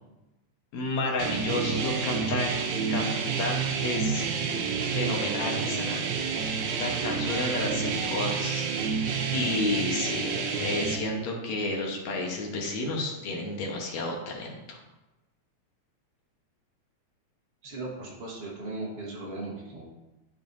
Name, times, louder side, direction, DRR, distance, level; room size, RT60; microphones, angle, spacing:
voice 1, 0.7-2.5 2.9-3.1 3.4-4.3 4.9-6.1 6.4-14.8, left 2 dB, 70° left, 0 dB, 2.4 m, -31 dB
sound 1, 1.2-11.0, right 5 dB, 85° right, 2.3 m, -29 dB
voice 2, 17.6-19.9, right 2 dB, 55° right, -5 dB, 0.6 m, -37 dB
12.5 x 4.9 x 2.7 m, 1.0 s
omnidirectional pair, 3.3 m